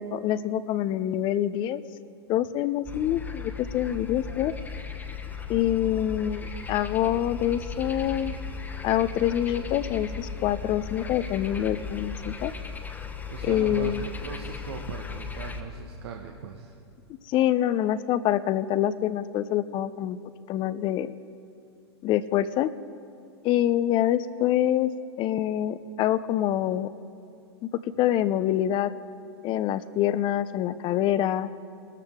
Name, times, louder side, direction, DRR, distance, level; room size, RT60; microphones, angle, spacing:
voice 1, 0.0-1.8 2.3-4.5 5.5-8.3 8.8-12.5 13.4-14.1 17.3-20.2 20.5-21.1 22.0-22.7 23.4-24.9 25.2-26.9 28.0-28.9 29.4-31.5, left 12 dB, 35° left, 16 dB, 0.5 m, -26 dB
sound 1, 2.9-15.6, left 5 dB, 10° left, 1.1 m, -36 dB
voice 2, 13.3-16.7, right 7 dB, 65° right, 1 dB, 1.1 m, -38 dB
21.5 x 13.5 x 3.6 m, 2.5 s
hypercardioid pair, 100°, 14 cm